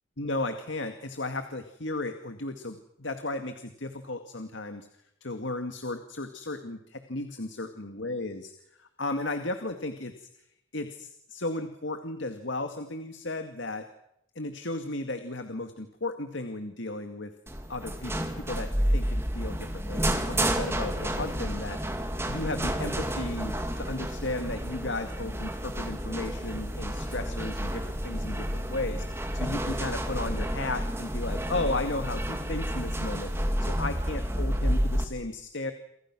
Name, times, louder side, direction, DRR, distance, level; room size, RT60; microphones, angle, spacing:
voice 1, 0.2-4.9 5.2-8.5 8.8-10.3 10.7-13.9 14.4-17.3 17.7-35.7, left 2 dB, 65° left, 7 dB, 2.2 m, -35 dB
sound 1, 17.5-35.0, equal, 10° right, 2.7 m, -30 dB
29.0 x 25.5 x 6.2 m, 0.78 s
head